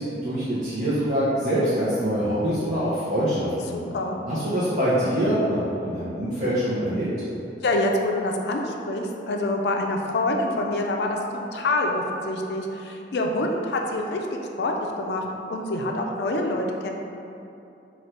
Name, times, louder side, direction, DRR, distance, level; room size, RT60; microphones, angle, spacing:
voice 1, 0.0-3.8 4.3-7.1, equal, 40° right, -11 dB, 0.6 m, -24 dB
voice 2, 3.7-4.2 7.6-11.2 11.5-16.9, left 2 dB, 70° left, 2 dB, 0.4 m, -26 dB
3.2 x 2.3 x 4.3 m, 2.8 s
head